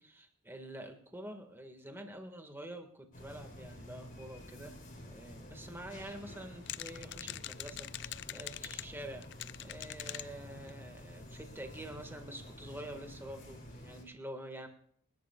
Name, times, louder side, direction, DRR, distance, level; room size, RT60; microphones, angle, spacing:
voice 1, 0.0-9.3 9.6-14.7, right 1 dB, 10° right, 4 dB, 1.7 m, -47 dB
sound 1, 3.1-14.0, left 1 dB, 35° left, 3.8 m, -50 dB
sound 2, 6.7-8.8 9.2-10.3 10.7-10.8 11.0-11.1 11.4-11.9, left 14 dB, 50° left, 0.4 m, -43 dB
27.5 x 11.5 x 2.4 m, 0.63 s
head